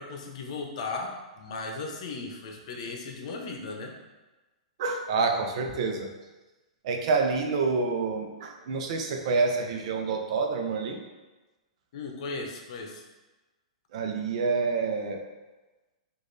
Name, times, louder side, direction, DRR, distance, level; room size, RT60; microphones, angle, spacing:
voice 1, 0.0-3.9 11.9-13.0, left 3 dB, 60° left, 3 dB, 0.8 m, -36 dB
voice 2, 4.8-6.1 6.8-11.0 13.9-15.2, right 4 dB, 60° right, 3 dB, 0.7 m, -27 dB
5.1 x 2.6 x 3.9 m, 1.2 s
hypercardioid pair, 135°, 4 cm